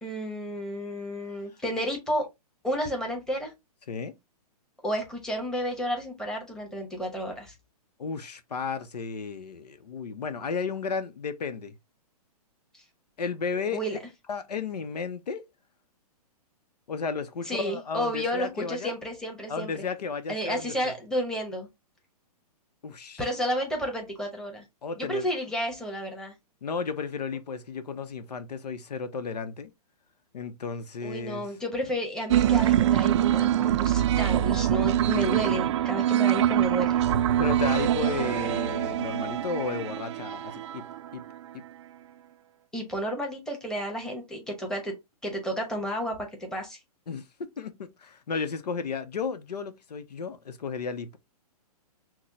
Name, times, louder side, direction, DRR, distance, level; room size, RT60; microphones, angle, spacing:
voice 1, 0.0-2.2 2.6-3.5 4.8-7.5 13.7-14.0 17.5-19.8 20.3-21.7 23.2-24.6 25.0-26.3 31.0-37.0 42.7-44.9 45.2-46.8, equal, 5° left, 0.9 m, -31 dB
voice 2, 8.0-11.7 13.2-13.8 14.3-15.4 16.9-18.9 19.5-20.9 22.8-23.2 24.8-25.3 26.6-29.7 30.3-31.5 37.4-40.8 41.1-41.2 47.1-47.2 47.6-51.2, left 5 dB, 90° left, 0.7 m, -33 dB
sound 1, 32.3-41.3, right 11 dB, 50° right, 0.4 m, -24 dB
6.0 x 2.1 x 2.7 m
hypercardioid pair, 140°, 20 cm